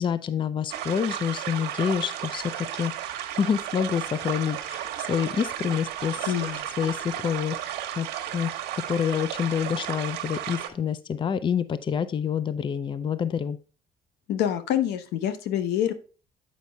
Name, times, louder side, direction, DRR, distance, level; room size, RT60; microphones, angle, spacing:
voice 1, 0.0-6.5 6.8-8.1 8.3-8.5 8.9-13.6, left 7 dB, 30° left, 15 dB, 0.5 m, -27 dB
sound 1, 0.7-10.7, right 11 dB, 85° right, 1.1 m, -34 dB
voice 2, 6.2-6.6 14.3-15.9, left 10 dB, 85° left, 11 dB, 0.9 m, -26 dB
8.3 x 5.2 x 3.4 m, 0.37 s
cardioid pair, 110°, 17 cm